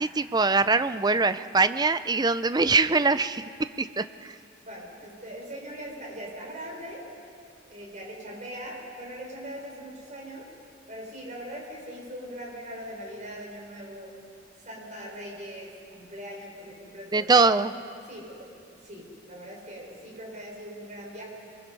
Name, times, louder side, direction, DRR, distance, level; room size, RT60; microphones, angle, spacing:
voice 1, 0.0-3.4 3.8-4.3 17.1-17.7, right 4 dB, 20° right, 12 dB, 0.6 m, -23 dB
voice 2, 4.6-7.1 7.7-10.5 10.9-14.2 14.6-17.5 18.1-21.3, equal, 40° right, -2 dB, 5.7 m, -41 dB
27.5 x 23.0 x 5.5 m, 2.5 s
head